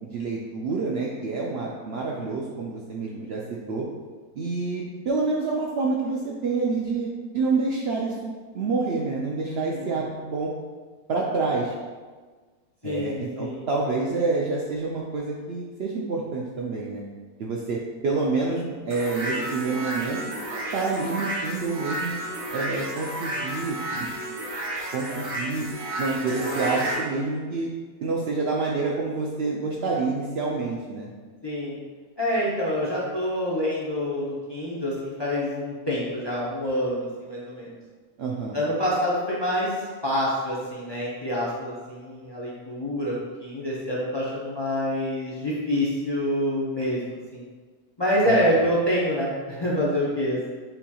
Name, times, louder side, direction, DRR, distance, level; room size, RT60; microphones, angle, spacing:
voice 1, 0.0-3.4 3.7-3.9 4.3-7.1 7.3-10.5 11.1-11.7 12.8-17.0 17.4-22.2 22.5-24.1 24.9-25.7 26.0-27.7 28.0-31.1 38.2-38.6 48.2-48.4, right 3 dB, 80° right, -3 dB, 0.5 m, -28 dB
voice 2, 9.5-10.0 12.8-13.6 31.4-31.8 32.2-37.8 38.5-39.7 40.0-47.4 48.0-50.5, equal, 35° left, -6 dB, 0.4 m, -26 dB
sound 1, 18.9-27.0, right 1 dB, 45° right, 0.9 m, -32 dB
7.5 x 2.9 x 2.3 m, 1.4 s
omnidirectional pair, 1.6 m